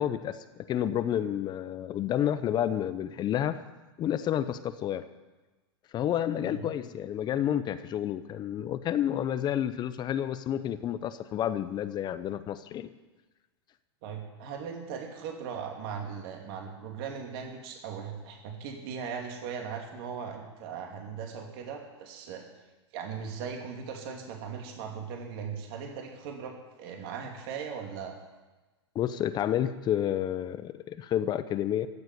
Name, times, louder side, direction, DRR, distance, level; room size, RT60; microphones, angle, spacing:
voice 1, 0.0-3.6 4.0-5.0 5.9-12.9 28.9-31.9, left 10 dB, 30° left, 13 dB, 0.8 m, -30 dB
voice 2, 14.0-22.5 22.9-28.1, right 6 dB, 55° right, 2 dB, 2.9 m, -39 dB
15.0 x 7.9 x 9.5 m, 1.2 s
hypercardioid pair, 115°, 15 cm